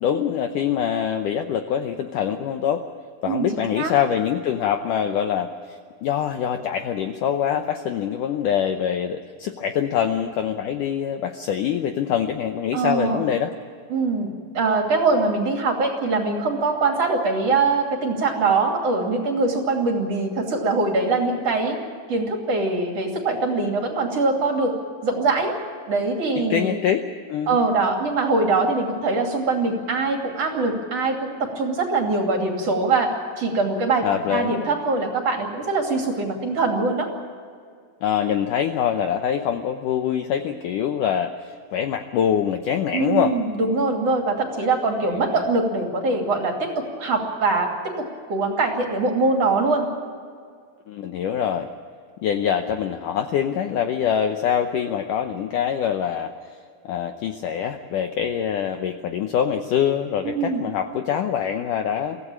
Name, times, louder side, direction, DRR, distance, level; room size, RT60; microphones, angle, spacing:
voice 1, 0.0-2.8 3.2-13.5 26.5-27.6 34.0-34.5 38.0-43.3 44.6-44.7 45.1-45.3 50.9-51.7 52.2-56.6 56.8-62.2, left 9 dB, 75° left, 6 dB, 1.9 m, -24 dB
voice 2, 3.3-3.9 12.7-13.2 13.9-21.8 22.1-24.7 25.0-25.5 25.9-26.8 27.5-37.1 42.9-47.7 48.0-49.9 60.2-60.6, right 3 dB, 40° right, 2 dB, 3.4 m, -23 dB
24.0 x 16.0 x 8.7 m, 2.2 s
omnidirectional pair, 4.7 m